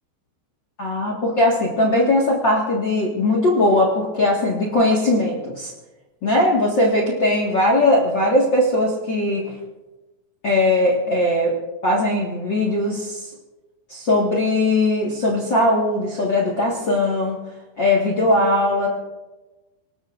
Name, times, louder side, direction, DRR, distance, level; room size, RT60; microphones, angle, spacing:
voice 1, 0.8-5.7 6.2-9.5 10.4-11.5 11.8-13.3 13.9-17.4 17.8-18.9, left 1 dB, 50° left, -3 dB, 1.3 m, -19 dB
26.5 x 19.0 x 2.6 m, 1.1 s
omnidirectional pair, 5.0 m